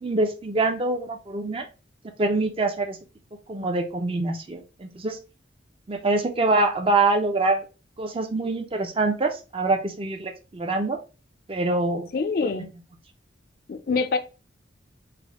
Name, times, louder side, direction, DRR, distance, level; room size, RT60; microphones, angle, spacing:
voice 1, 0.0-1.6 2.2-3.0 3.5-5.2 5.9-7.6 8.0-11.0 11.5-12.1, right 2 dB, 30° right, 0.4 m, -25 dB
voice 2, 12.1-12.7 13.7-14.2, left 4 dB, 50° left, 0.4 m, -25 dB
3.4 x 2.1 x 3.5 m
head